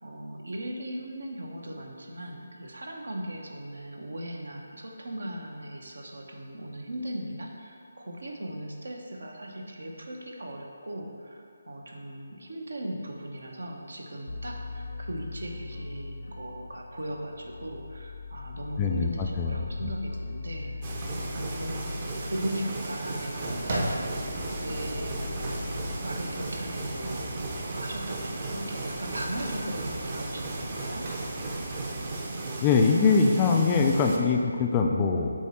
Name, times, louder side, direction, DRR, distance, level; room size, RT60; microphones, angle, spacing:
voice 1, 0.0-21.0 21.4-21.8 22.2-23.7 24.4-25.1 25.4-27.3 27.6-31.1, right 1 dB, 75° right, 1 dB, 0.9 m, -38 dB
sound 1, 14.3-26.0, left 3 dB, 75° left, 0.5 m, -40 dB
voice 2, 18.8-19.6 32.6-35.3, left 4 dB, 20° left, 2 dB, 0.3 m, -23 dB
sound 2, 20.8-34.2, right 2 dB, 30° right, 0.6 m, -35 dB
sound 3, 23.4-32.3, right 1 dB, 50° right, 1.2 m, -38 dB
7.5 x 3.2 x 4.3 m, 2.4 s
figure-of-eight pair, 155°, 0 cm